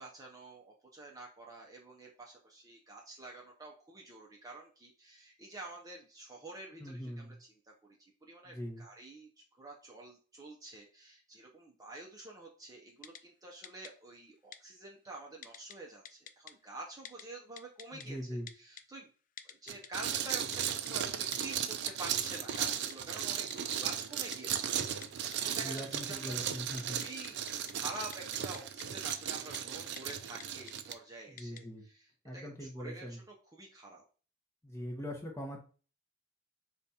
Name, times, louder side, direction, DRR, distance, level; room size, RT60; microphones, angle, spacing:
voice 1, 0.0-7.3 7.6-18.2 18.5-19.1 19.4-23.5 23.8-26.4 26.8-27.4 27.7-32.0 32.3-33.2 33.5-34.0, right 2 dB, 15° right, -1 dB, 0.6 m, -48 dB
voice 2, 6.8-7.4 8.4-8.8 17.9-18.5 25.6-27.0 31.3-31.8 32.2-33.2 34.6-35.6, equal, 10° left, 1 dB, 0.9 m, -41 dB
Typing, 13.0-13.2 13.6-13.9 14.5-14.6 15.4-15.8 16.1-16.5 17.1-17.2 17.6-18.1 18.5-18.8 19.4-19.9 20.3-20.9 21.3-21.6 21.9-22.0 22.2-22.3 22.6-23.0 23.2-23.3 23.5-23.8 24.3-24.4 25.0-25.4 25.8-26.4 26.7-27.7 28.1-28.9 29.1-29.2 29.5-29.6 30.0-30.1 30.4-31.0 31.4-31.6, left 8 dB, 35° left, 0.3 m, -48 dB
sound 1, 19.7-30.9, right 9 dB, 50° right, 0.4 m, -36 dB
5.1 x 2.4 x 4.1 m, 0.37 s
head